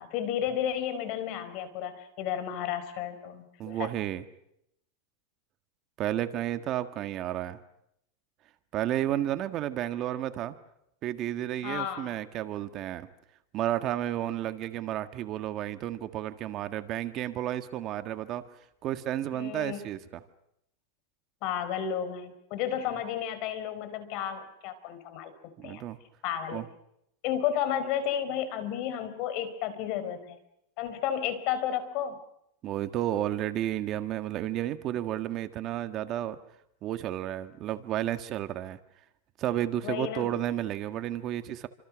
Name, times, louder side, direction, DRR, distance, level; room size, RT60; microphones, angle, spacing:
voice 1, 0.0-3.9 11.6-12.1 19.3-19.8 21.4-25.3 25.6-25.8 26.2-26.6 27.2-30.4 30.8-32.2 39.8-40.3, left 9 dB, 50° left, 12 dB, 4.5 m, -32 dB
voice 2, 3.6-4.2 6.0-7.6 8.7-10.5 11.0-13.1 13.5-18.4 18.8-20.2 25.6-26.0 26.5-26.6 32.6-36.4 36.8-38.8 39.4-41.7, right 12 dB, 40° right, 9 dB, 1.6 m, -32 dB
28.5 x 26.0 x 6.3 m, 0.78 s
supercardioid pair, 140°, 0 cm